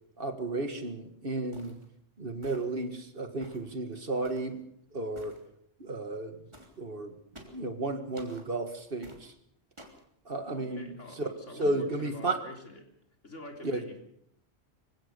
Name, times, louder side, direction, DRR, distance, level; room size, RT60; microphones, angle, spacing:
voice 1, 0.2-1.8 2.2-4.6 4.9-5.4 5.8-6.4 6.8-7.2 7.4-9.3 10.3-10.9 11.2-11.3 11.6-12.4 13.6-13.8, right 2 dB, 50° right, 8 dB, 2.0 m, -33 dB
sound 1, 1.5-1.8 2.4-2.8 3.4-3.7 4.2-4.5 5.1-5.4 6.5-6.8 7.3-7.6 8.2-8.5 9.0-9.2 9.8-10.0, right 1 dB, 25° right, 3.3 m, -52 dB
voice 2, 10.5-12.8 13.2-14.0, left 1 dB, 85° left, 3 dB, 3.9 m, -46 dB
25.0 x 16.0 x 6.8 m, 0.71 s
omnidirectional pair, 1.2 m